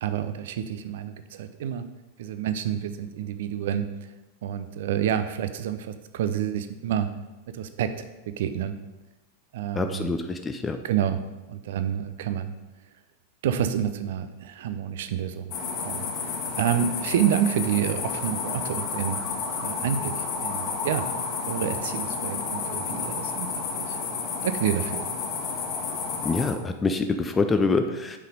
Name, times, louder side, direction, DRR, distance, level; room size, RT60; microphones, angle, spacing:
voice 1, 0.0-1.8 2.2-3.9 4.4-7.1 7.5-7.9 8.3-8.7 9.5-10.1 10.8-11.2 11.5-12.5 13.4-16.0 16.6-19.2 19.6-21.0 21.5-23.5 23.7-24.0 24.4-25.1, right 9 dB, 55° right, 10 dB, 0.6 m, -28 dB
voice 2, 9.8-10.8 26.2-28.2, left 3 dB, 15° left, 7 dB, 0.6 m, -25 dB
sound 1, 15.5-26.5, left 5 dB, 40° left, 1.7 m, -31 dB
8.4 x 5.8 x 5.0 m, 1.1 s
figure-of-eight pair, 90°, 0 cm